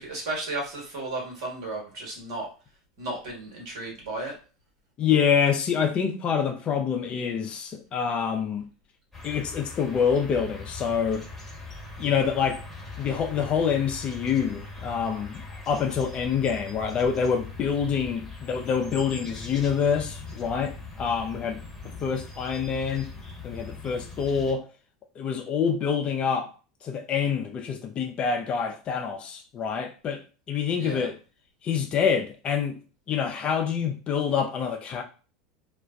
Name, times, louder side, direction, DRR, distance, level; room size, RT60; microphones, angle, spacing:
voice 1, 0.0-2.5 3.0-4.3 30.8-31.1, right 2 dB, 65° right, 1.2 m, -34 dB
voice 2, 5.0-8.7 9.2-11.3 12.0-12.6 13.0-21.6 22.0-23.1 23.4-24.7 25.2-26.5 26.8-30.2 30.5-31.2 31.6-32.8 33.1-35.0, left 7 dB, 35° left, 0.5 m, -26 dB
sound 1, 9.1-24.5, left 3 dB, 5° left, 1.1 m, -41 dB
2.4 x 2.1 x 2.3 m
hypercardioid pair, 85°, 3 cm